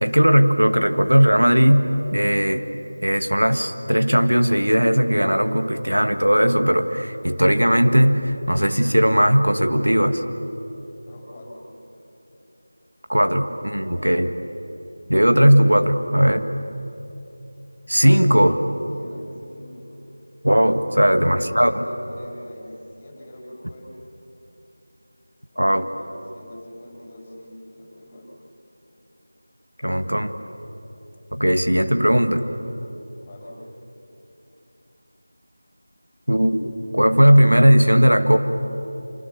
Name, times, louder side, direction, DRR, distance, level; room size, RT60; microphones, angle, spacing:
voice 1, 0.0-2.6 3.0-10.2 13.1-14.3 15.1-16.5 17.9-18.6 20.4-21.8 25.6-25.9 29.8-30.3 31.3-32.4 36.3-38.4, equal, 90° right, 8 dB, 1.8 m, -17 dB
voice 2, 10.7-11.6 18.0-19.9 20.9-23.9 25.5-28.3 33.2-33.6, left 1 dB, 20° left, -2 dB, 6.8 m, -43 dB
27.5 x 24.5 x 7.3 m, 2.9 s
figure-of-eight pair, 170°, 0 cm